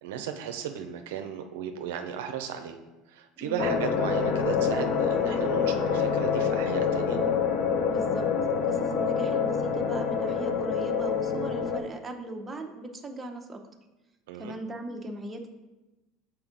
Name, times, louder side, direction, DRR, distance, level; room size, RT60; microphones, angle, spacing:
voice 1, 0.0-2.8 3.1-7.2 14.3-14.5, right 8 dB, 85° right, 6 dB, 0.5 m, -35 dB
voice 2, 3.4-3.7 7.9-8.3 8.6-13.6 14.3-15.5, right 2 dB, 20° right, 3 dB, 0.7 m, -38 dB
sound 1, 3.6-11.8, left 6 dB, 55° left, 0.7 m, -26 dB
5.8 x 4.3 x 3.8 m, 1.1 s
supercardioid pair, 105°, 0 cm